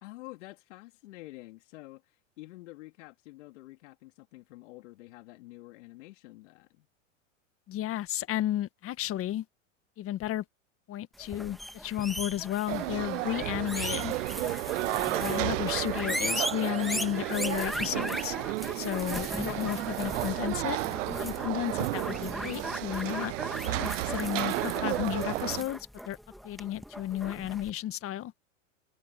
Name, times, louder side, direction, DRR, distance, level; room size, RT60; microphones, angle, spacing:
voice 1, 0.0-2.0 2.4-6.9, left 20 dB, 65° left, 3.4 m, -48 dB
voice 2, 7.7-9.5 10.0-10.4 10.9-14.1 15.1-18.4 18.7-20.8 21.0-23.3 23.6-26.2 26.4-28.3, left 13 dB, 35° left, 1.7 m, -33 dB
sound 1, 11.2-27.7, equal, ahead, 2.0 m, -38 dB
sound 2, 12.7-25.6, right 19 dB, 70° right, 0.5 m, -33 dB
hypercardioid pair, 110°, 39 cm